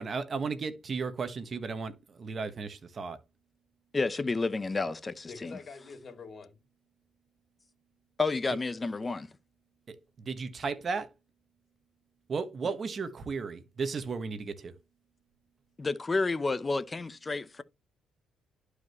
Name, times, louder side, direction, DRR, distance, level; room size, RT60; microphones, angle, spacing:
voice 1, 0.0-3.2 9.9-11.1 12.3-14.8, right 4 dB, 45° right, 1.4 m, -35 dB
voice 2, 3.9-5.6 8.2-9.3 15.8-17.6, left 3 dB, 25° left, 0.8 m, -30 dB
voice 3, 5.3-6.5, left 4 dB, 45° left, 2.9 m, -45 dB
11.5 x 4.9 x 3.1 m
cardioid pair, 90°, 0 cm